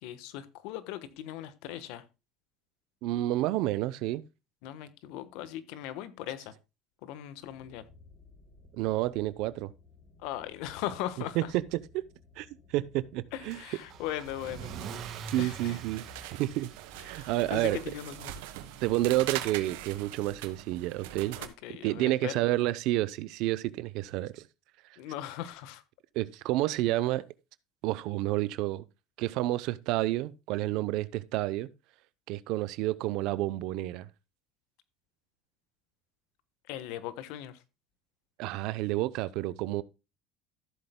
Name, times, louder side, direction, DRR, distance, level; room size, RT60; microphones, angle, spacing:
voice 1, 0.0-2.0 4.6-6.5 7.0-7.9 10.2-11.5 13.3-14.7 15.4-15.8 17.1-18.4 21.4-22.3 25.0-25.8 36.7-37.6, left 12 dB, 75° left, 1.2 m, -39 dB
voice 2, 3.0-4.2 8.7-9.7 11.4-11.6 11.9-12.0 12.4-13.6 15.3-16.0 16.3-16.7 17.0-17.8 18.8-21.4 21.8-24.5 24.9-25.0 26.1-27.2 27.8-28.8 29.2-31.7 32.3-34.1 38.4-39.8, right 16 dB, 70° right, 0.7 m, -30 dB
sound 1, 7.4-16.6, left 4 dB, 55° left, 3.9 m, -58 dB
Car / Engine starting / Accelerating revving vroom, 13.5-20.6, right 6 dB, 55° right, 2.0 m, -46 dB
sound 2, 14.2-21.5, right 13 dB, 90° right, 1.3 m, -42 dB
14.0 x 7.9 x 2.2 m
supercardioid pair, 115°, 0 cm